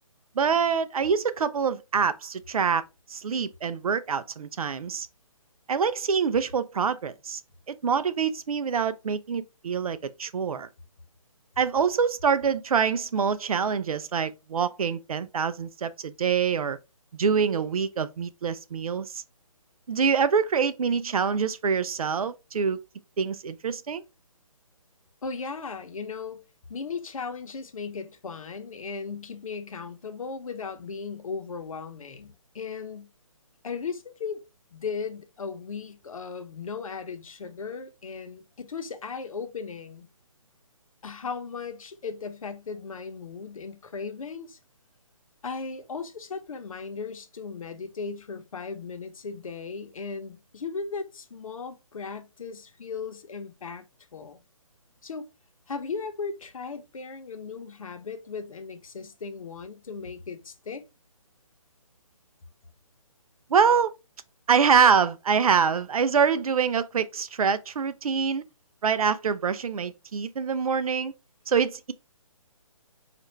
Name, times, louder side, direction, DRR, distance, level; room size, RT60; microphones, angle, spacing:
voice 1, 0.4-2.8 3.1-5.1 5.7-7.4 7.7-10.7 11.6-16.8 17.2-19.2 19.9-22.8 23.2-24.0 63.5-63.9 64.5-68.4 68.8-71.1 71.5-71.9, right 6 dB, 90° right, 0.4 m, -25 dB
voice 2, 25.2-26.4 26.7-33.1 33.6-34.4 34.7-40.1 41.0-44.6 45.4-53.8 54.1-54.4 55.0-55.3 55.7-60.9, left 5 dB, 70° left, 0.8 m, -37 dB
4.3 x 2.5 x 3.1 m
hypercardioid pair, 155°, 18 cm